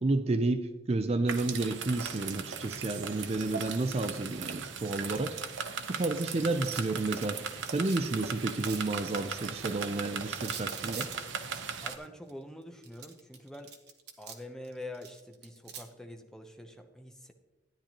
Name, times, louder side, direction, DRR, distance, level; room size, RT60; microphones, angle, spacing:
voice 1, 0.0-5.4 5.9-7.4 7.7-11.1, right 2 dB, 35° right, 9 dB, 0.4 m, -31 dB
sound 1, 1.3-12.0, right 6 dB, 85° right, 0.8 m, -38 dB
sound 2, 6.6-8.0 8.3-9.9 10.4-12.3 12.8-14.4 14.6-15.8, right 7 dB, 60° right, 1.1 m, -45 dB
voice 2, 11.8-13.7 14.2-17.3, left 1 dB, 5° left, 5 dB, 0.7 m, -45 dB
13.0 x 9.9 x 3.0 m, 1.1 s
head